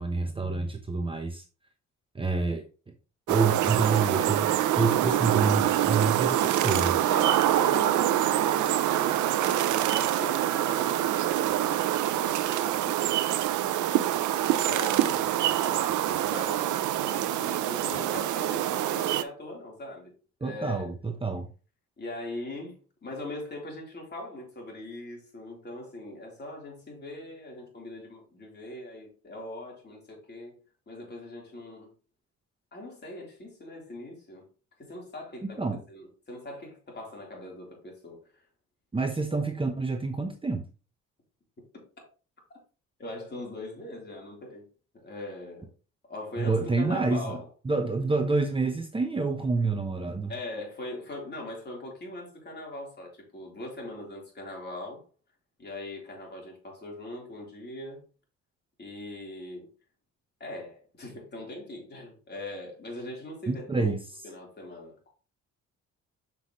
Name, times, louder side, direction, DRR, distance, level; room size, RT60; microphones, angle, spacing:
voice 1, 0.0-1.4 2.1-2.6 3.3-6.9 20.4-21.5 35.6-35.8 38.9-40.6 46.4-47.4 47.6-50.3 63.5-64.0, right 3 dB, 15° right, 0.9 m, -28 dB
sound 1, 3.3-19.2, right 12 dB, 80° right, 0.6 m, -25 dB
voice 2, 7.0-13.2 14.5-15.2 15.6-20.9 22.0-22.8 23.0-30.6 30.9-31.9 32.7-34.4 34.8-38.2 41.7-41.8 43.0-44.7 44.9-45.7 46.1-47.5 50.3-55.1 55.6-58.0 58.8-59.7 60.4-63.9 64.2-65.1, left 1 dB, 35° left, 3.8 m, -41 dB
7.0 x 5.9 x 3.1 m
cardioid pair, 90°, 30 cm